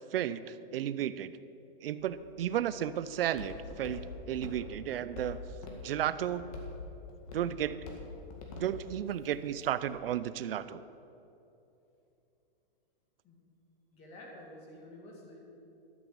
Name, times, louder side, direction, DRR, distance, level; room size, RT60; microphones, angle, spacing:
voice 1, 0.1-1.3 1.8-5.4 5.8-6.5 7.3-7.8 8.6-10.8, right 10 dB, 75° right, 14 dB, 0.6 m, -33 dB
Walk footsteps, 2.0-9.9, left 3 dB, 40° left, 2.0 m, -46 dB
voice 2, 13.9-15.4, left 1 dB, 20° left, -1 dB, 2.1 m, -50 dB
12.0 x 8.0 x 7.1 m, 2.8 s
supercardioid pair, 170°, 29 cm